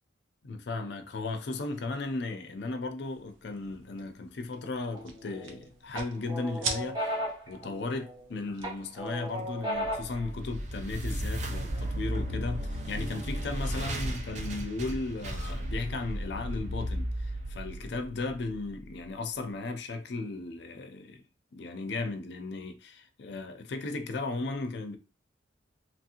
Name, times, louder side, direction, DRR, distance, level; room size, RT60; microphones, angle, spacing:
voice 1, 0.4-21.2 21.5-25.0, left 3 dB, 60° left, 0.4 m, -36 dB
sound 1, 3.0-9.7, right 4 dB, 85° right, 0.6 m, -43 dB
sound 2, 4.9-5.5 5.9-8.2 8.6-10.2, equal, 20° right, 0.8 m, -35 dB
sound 3, 9.8-18.9, equal, 35° right, 0.4 m, -35 dB
3.0 x 2.5 x 2.8 m
head